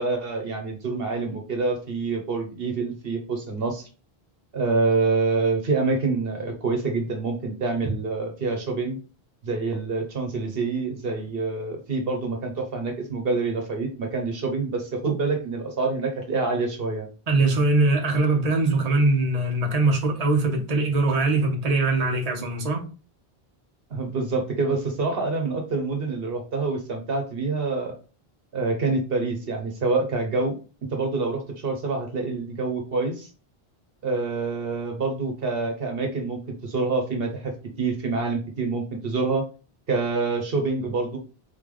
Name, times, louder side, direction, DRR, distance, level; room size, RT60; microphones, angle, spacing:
voice 1, 0.0-3.9 4.5-9.0 9.4-17.1 23.9-27.9 28.5-30.6 30.9-33.3 34.0-37.5 37.8-39.4 39.9-41.2, right 3 dB, 65° right, 1.1 m, -26 dB
voice 2, 17.3-22.8, right 2 dB, 40° right, 1.0 m, -22 dB
4.0 x 3.4 x 3.7 m
omnidirectional pair, 1.0 m